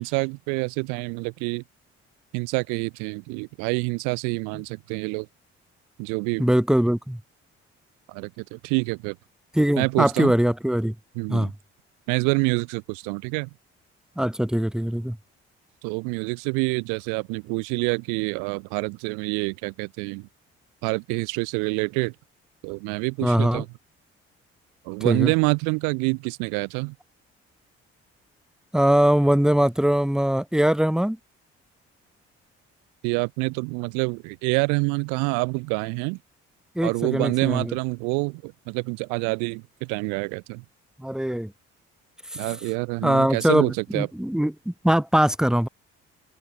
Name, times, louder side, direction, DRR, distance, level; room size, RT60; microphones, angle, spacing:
voice 1, 0.0-1.6 2.3-5.3 6.0-6.4 8.1-9.2 9.8-10.3 11.2-11.5 12.1-13.5 15.8-20.3 20.8-22.1 22.6-23.7 24.9-26.9 33.0-36.2 36.8-40.6 42.3-44.1, right 35 dB, 85° right, 0.5 m, -27 dB
voice 2, 6.4-7.2 9.5-10.9 11.3-11.5 14.2-15.2 23.2-23.6 25.0-25.3 28.7-31.2 36.7-37.7 41.0-41.5 42.3-42.4 43.0-45.7, right 1 dB, ahead, 1.2 m, -22 dB
open air
hypercardioid pair, 55°, 29 cm